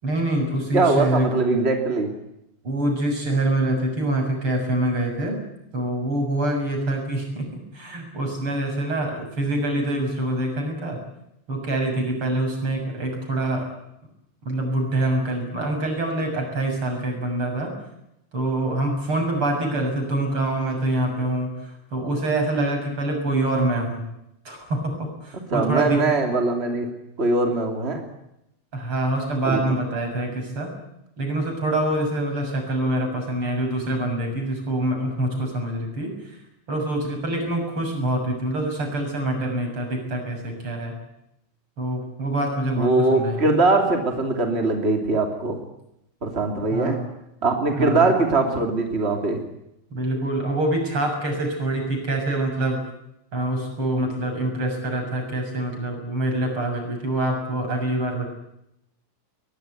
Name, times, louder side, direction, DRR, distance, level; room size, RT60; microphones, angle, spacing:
voice 1, 0.0-1.3 2.6-5.4 5.7-7.5 7.7-11.0 11.5-13.7 14.5-17.7 18.3-24.0 24.5-26.0 28.7-30.7 31.2-36.4 36.7-40.9 41.8-43.5 46.7-47.1 47.8-48.1 49.9-52.8 53.3-58.3, right 1 dB, 80° right, 3 dB, 7.9 m, -25 dB
voice 2, 0.7-2.1 25.5-26.9 27.2-28.0 29.4-29.6 42.8-45.6 46.2-47.0 47.4-49.4, right 3 dB, 30° right, 4 dB, 3.1 m, -21 dB
22.0 x 21.0 x 9.4 m, 0.83 s
omnidirectional pair, 2.3 m